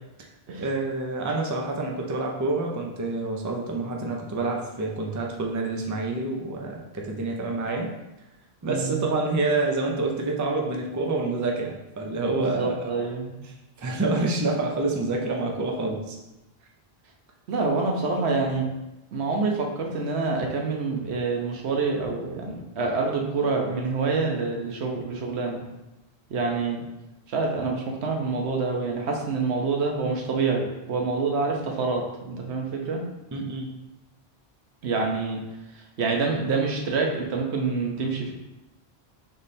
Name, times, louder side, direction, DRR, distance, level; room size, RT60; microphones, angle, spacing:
voice 1, 0.2-7.9 8.6-12.9 13.8-16.2 33.3-33.7, right 2 dB, 25° right, 0 dB, 0.4 m, -27 dB
voice 2, 12.3-13.3 17.5-18.6 19.1-25.6 26.3-26.8 27.3-33.0 34.8-35.4 36.0-38.3, right 4 dB, 85° right, 1 dB, 1.0 m, -27 dB
3.6 x 3.2 x 4.1 m, 0.97 s
omnidirectional pair, 1.1 m